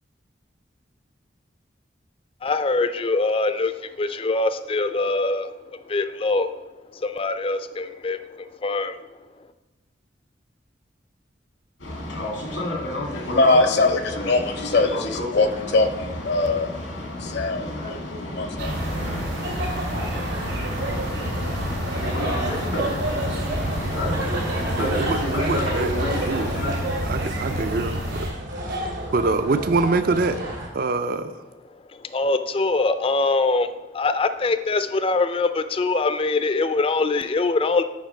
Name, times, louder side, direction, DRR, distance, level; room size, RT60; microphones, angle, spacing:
voice 1, 2.4-6.5 6.9-9.0 31.9-37.8, left 3 dB, 30° left, 11 dB, 0.4 m, -23 dB
Boat Water vehicle, 11.8-26.7, left 1 dB, 90° left, 2.0 m, -31 dB
voice 2, 13.0-19.8, left 2 dB, 65° left, 8 dB, 0.7 m, -23 dB
sound 1, 18.6-28.3, equal, 70° right, 2.1 m, -29 dB
sound 2, 18.8-30.7, right 1 dB, 85° right, 2.4 m, -31 dB
voice 3, 24.8-26.5 27.0-28.3 28.7-30.4 30.7-31.3, right 3 dB, 50° right, 10 dB, 0.4 m, -25 dB
7.4 x 5.3 x 4.4 m, 1.1 s
head